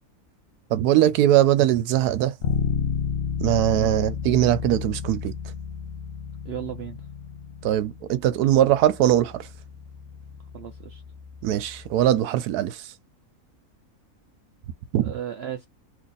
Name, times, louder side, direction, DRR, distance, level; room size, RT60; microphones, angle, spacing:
voice 1, 0.7-2.3 3.4-5.3 7.6-9.5 11.4-12.9 14.9-15.1, right 12 dB, 90° right, 1.1 m, -21 dB
Bass guitar, 2.4-12.2, left 6 dB, 60° left, 0.7 m, -32 dB
voice 2, 6.4-7.1 10.5-11.0 15.0-15.7, right 10 dB, 70° right, 0.6 m, -35 dB
3.0 x 2.5 x 4.0 m
omnidirectional pair, 1.6 m